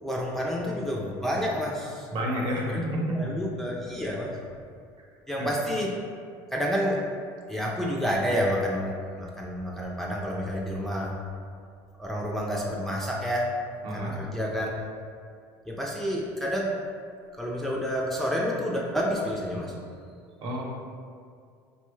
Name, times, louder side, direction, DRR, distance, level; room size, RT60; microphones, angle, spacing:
voice 1, 0.0-2.1 2.7-2.8 3.1-4.3 5.3-5.9 6.5-7.0 7.5-11.1 12.0-13.5 13.9-14.7 15.7-16.7 17.4-19.7, equal, 5° left, -3 dB, 0.4 m, -29 dB
voice 2, 2.1-3.2 5.4-5.5 13.8-14.2 20.4-20.6, equal, 50° right, -3 dB, 0.9 m, -29 dB
3.8 x 2.2 x 3.1 m, 2.3 s
supercardioid pair, 105°, 10 cm